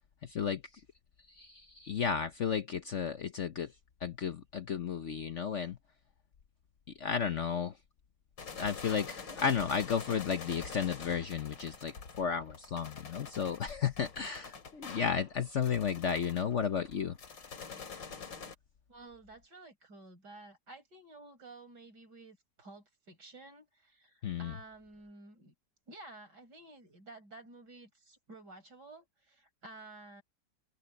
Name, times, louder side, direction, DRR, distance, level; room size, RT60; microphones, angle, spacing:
voice 1, 0.2-0.6 1.3-3.7 4.0-5.8 7.0-7.8 8.5-17.2 24.2-24.5, left 7 dB, 55° left, 0.9 m, -33 dB
sound 1, 8.4-18.5, left 5 dB, 90° left, 3.3 m, -46 dB
voice 2, 18.9-25.5 25.9-30.2, right 2 dB, 70° right, 5.5 m, -52 dB
omnidirectional pair, 1.9 m